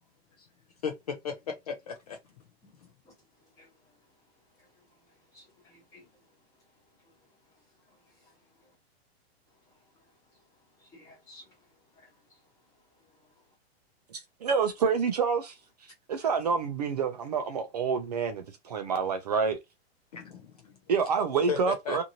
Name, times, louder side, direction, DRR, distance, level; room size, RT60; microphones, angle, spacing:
voice 1, 0.8-2.2 20.1-20.8 21.5-22.0, left 6 dB, 40° left, 0.4 m, -35 dB
voice 2, 3.5-3.9 4.6-5.0 5.3-6.3 7.0-7.3 7.8-8.8 10.0-10.4 10.8-11.7 11.9-12.4 13.0-13.3, left 1 dB, 10° left, 0.9 m, -59 dB
voice 3, 14.1-15.6 15.8-19.6 20.9-22.0, right 5 dB, 40° right, 0.4 m, -28 dB
2.6 x 2.6 x 2.9 m
supercardioid pair, 175°, 32 cm